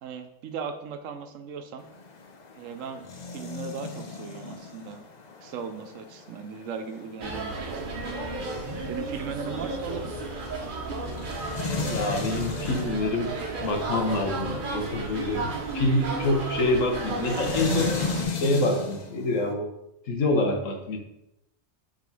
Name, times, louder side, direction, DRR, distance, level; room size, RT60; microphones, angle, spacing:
voice 1, 0.0-1.9 2.6-3.1 3.3-5.1 5.4-8.1 8.9-10.1, right 6 dB, 90° right, 8 dB, 1.1 m, -37 dB
sound 1, 1.8-19.5, left 3 dB, 40° left, 0.7 m, -37 dB
sound 2, 7.2-18.2, right 3 dB, 45° right, 0.9 m, -33 dB
voice 2, 11.9-13.3 13.6-17.9 18.4-19.7 20.1-21.0, left 2 dB, 85° left, 3 dB, 1.4 m, -26 dB
5.0 x 3.7 x 5.3 m, 0.85 s
omnidirectional pair, 1.3 m